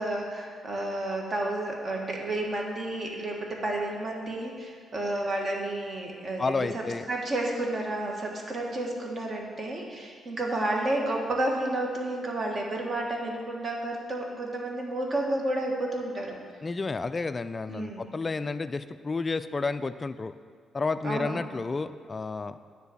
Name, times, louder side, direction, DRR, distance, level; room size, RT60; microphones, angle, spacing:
voice 1, 0.0-16.4 17.7-18.1 21.0-21.4, right 1 dB, 40° right, 0 dB, 1.5 m, -31 dB
voice 2, 6.4-7.0 16.6-20.3 20.7-22.6, left 4 dB, 25° left, 12 dB, 0.3 m, -31 dB
9.7 x 4.0 x 7.0 m, 2.1 s
cardioid pair, 110°, 0 cm